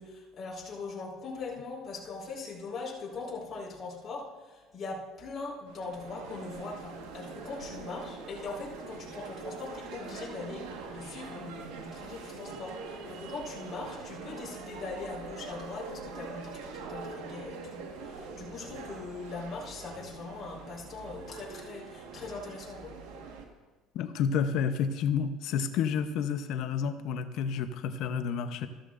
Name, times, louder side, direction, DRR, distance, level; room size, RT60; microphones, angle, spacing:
voice 1, 0.0-10.7 10.9-23.0, left 3 dB, 35° left, -4 dB, 4.1 m, -41 dB
sound 1, 5.7-23.4, right 4 dB, 90° right, 1.4 m, -43 dB
voice 2, 23.9-28.7, left 7 dB, 65° left, 10 dB, 0.7 m, -30 dB
14.0 x 13.0 x 2.5 m, 1.3 s
supercardioid pair, 105°, 0 cm